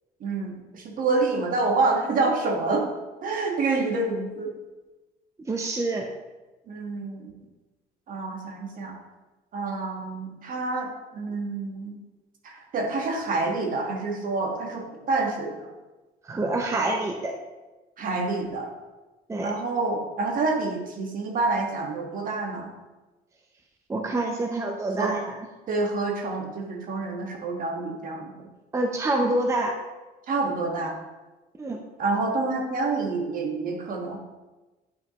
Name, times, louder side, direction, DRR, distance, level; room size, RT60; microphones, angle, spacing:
voice 1, 0.2-2.9 3.2-4.5 6.7-7.3 8.1-9.0 9.5-12.0 12.4-15.7 18.0-18.7 19.4-22.7 25.0-25.1 25.7-28.5 30.3-30.9 32.0-34.2, right 3 dB, 55° right, 2 dB, 1.4 m, -27 dB
voice 2, 5.5-6.1 16.2-17.3 19.3-19.5 23.9-25.4 28.7-29.7 31.6-31.8, right 2 dB, 15° right, 2 dB, 0.6 m, -26 dB
9.0 x 5.2 x 3.0 m, 1.2 s
cardioid pair, 110°, 17 cm